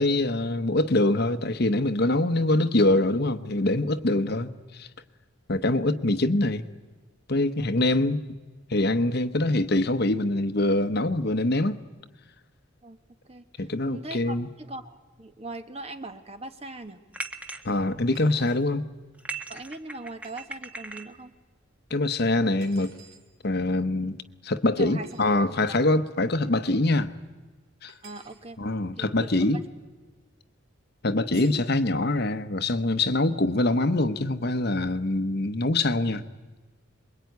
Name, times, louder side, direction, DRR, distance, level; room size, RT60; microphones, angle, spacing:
voice 1, 0.0-4.9 5.5-6.6 7.3-8.2 8.7-11.8 13.6-14.5 17.6-18.9 21.9-22.9 23.4-24.2 24.4-27.1 27.8-27.9 28.6-29.6 31.0-36.2, left 2 dB, 50° left, 1.0 m, -24 dB
voice 2, 7.6-8.0 12.8-13.0 13.2-17.0 19.5-21.3 24.0-24.1 24.8-25.1 28.0-28.6 29.0-29.6, right 2 dB, 30° right, 1.4 m, -40 dB
sound 1, 17.1-17.6 18.2-18.6 19.1-21.1, right 2 dB, 5° right, 1.2 m, -38 dB
sound 2, 18.1-18.6 20.2-20.5 22.6-23.2 25.0-25.3 27.9-28.4 31.3-31.7, right 5 dB, 80° right, 4.3 m, -51 dB
26.5 x 22.0 x 9.4 m
head